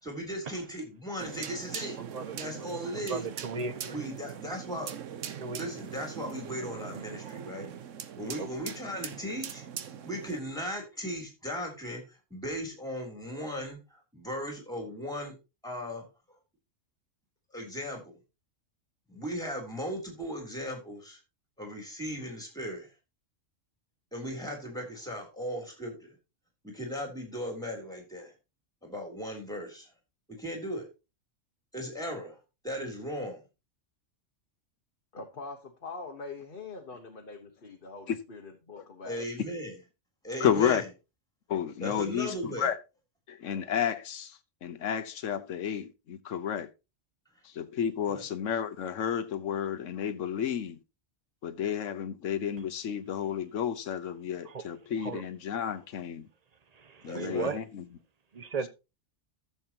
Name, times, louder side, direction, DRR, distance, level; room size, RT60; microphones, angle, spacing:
voice 1, 0.0-2.0 2.3-3.3 3.9-4.9 5.4-7.7 8.2-9.7 10.0-15.3 15.6-16.1 17.5-18.2 19.1-21.2 21.6-22.9 24.1-26.1 26.6-28.3 28.8-29.9 30.3-30.9 31.7-32.4 32.6-33.4 39.0-39.7 40.2-40.9 41.8-42.7 48.1-48.2 57.0-57.5, equal, 5° left, 3.3 m, -37 dB
sound 1, 1.2-10.4, right 8 dB, 75° right, 1.2 m, -41 dB
voice 2, 2.0-2.7 2.9-4.1 5.3-5.7 8.4-8.5 54.4-54.6 55.0-55.2 56.7-57.6 58.3-58.7, right 5 dB, 35° right, 0.8 m, -37 dB
voice 3, 35.1-39.2, left 3 dB, 45° left, 1.3 m, -43 dB
voice 4, 40.4-40.8 41.5-42.8 43.3-46.7 47.4-50.8 51.4-56.3 57.0-57.8, left 8 dB, 80° left, 1.2 m, -31 dB
14.0 x 7.1 x 2.9 m
omnidirectional pair, 1.3 m